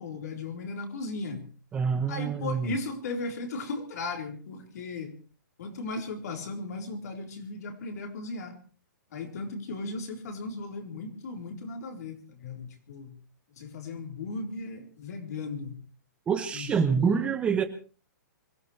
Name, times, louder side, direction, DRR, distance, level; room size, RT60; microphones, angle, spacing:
voice 1, 0.0-1.5 2.1-5.1 5.6-8.6 9.1-13.2 13.6-15.8 16.5-17.3, left 3 dB, 55° left, 3 dB, 4.0 m, -36 dB
voice 2, 1.7-2.7 16.3-17.7, right 6 dB, 10° right, 9 dB, 0.8 m, -26 dB
25.0 x 16.5 x 3.2 m, 0.38 s
hypercardioid pair, 165°, 11 cm